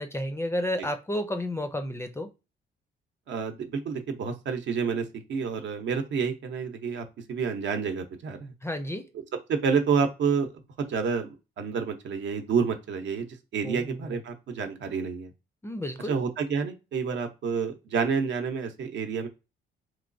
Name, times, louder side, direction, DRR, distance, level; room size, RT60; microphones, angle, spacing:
voice 1, 0.0-2.3 8.6-9.1 13.6-14.2 15.6-16.1, left 1 dB, 15° left, 0.4 m, -31 dB
voice 2, 3.3-8.5 9.5-10.5 10.8-13.3 13.5-15.3 16.1-19.3, right 5 dB, 65° right, 0.8 m, -29 dB
3.1 x 3.0 x 2.6 m
cardioid pair, 90°, 20 cm